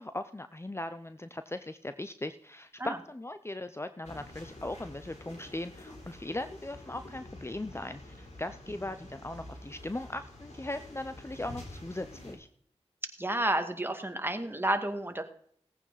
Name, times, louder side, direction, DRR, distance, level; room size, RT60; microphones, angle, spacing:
voice 1, 0.0-12.5, left 1 dB, 20° left, 10 dB, 0.7 m, -39 dB
sound 1, 4.0-12.3, left 1 dB, 85° left, 4.5 m, -48 dB
voice 2, 13.2-15.2, right 1 dB, 20° right, 6 dB, 2.0 m, -30 dB
17.5 x 9.0 x 4.1 m, 0.63 s
cardioid pair, 40°, 11 cm